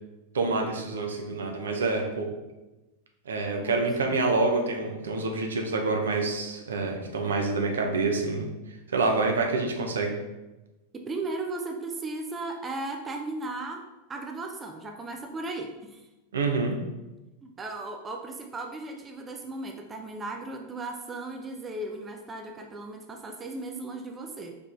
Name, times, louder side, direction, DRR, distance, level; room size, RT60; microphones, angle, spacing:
voice 1, 0.3-2.3 3.3-8.5 8.9-10.1 16.3-16.8, right 3 dB, 65° right, 2 dB, 0.7 m, -27 dB
voice 2, 3.6-4.2 10.9-13.8 14.1-16.1 17.4-24.5, right 2 dB, 20° right, 3 dB, 0.4 m, -36 dB
4.6 x 4.5 x 2.5 m, 1.1 s
figure-of-eight pair, 90°, 0 cm